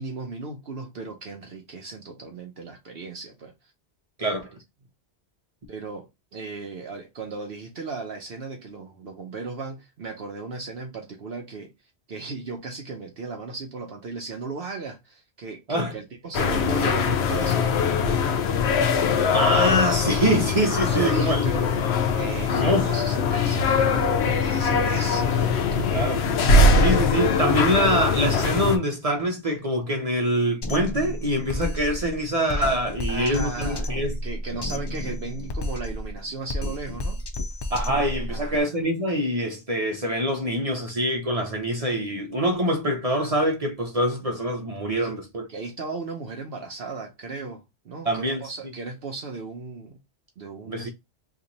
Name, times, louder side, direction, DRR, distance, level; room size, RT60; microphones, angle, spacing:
voice 1, 0.0-3.5 4.2-4.3 5.7-11.7 12.1-18.2 20.8-26.1 33.1-37.2 38.3-38.8 45.0-45.1 45.5-50.0 50.4-50.9, right 3 dB, 65° right, 0.9 m, -36 dB
voice 2, 4.2-4.5 15.7-16.0 19.3-21.4 22.5-22.9 25.9-26.2 26.8-34.2 37.7-45.5 48.0-48.5 50.7-50.9, equal, 35° right, 0.8 m, -25 dB
sound 1, 16.3-28.8, left 4 dB, 80° left, 0.9 m, -22 dB
Drum kit, 30.6-38.6, left 1 dB, 45° left, 0.3 m, -31 dB
2.9 x 2.5 x 3.8 m
omnidirectional pair, 1.1 m